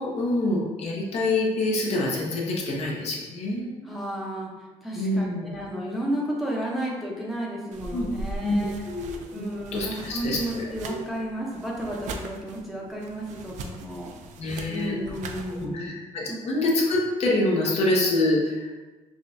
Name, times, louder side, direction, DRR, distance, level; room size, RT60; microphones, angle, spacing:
voice 1, 0.0-3.9 4.9-5.5 7.9-8.0 8.4-11.0 14.4-15.2 15.6-18.7, left 2 dB, 60° left, -3 dB, 0.8 m, -26 dB
voice 2, 3.8-14.1 14.7-15.9 16.3-16.4, right 1 dB, ahead, -4 dB, 0.7 m, -33 dB
sound 1, 7.7-15.7, right 3 dB, 85° right, 0.4 m, -40 dB
4.8 x 2.3 x 2.6 m, 1.2 s
cardioid pair, 120°, 12 cm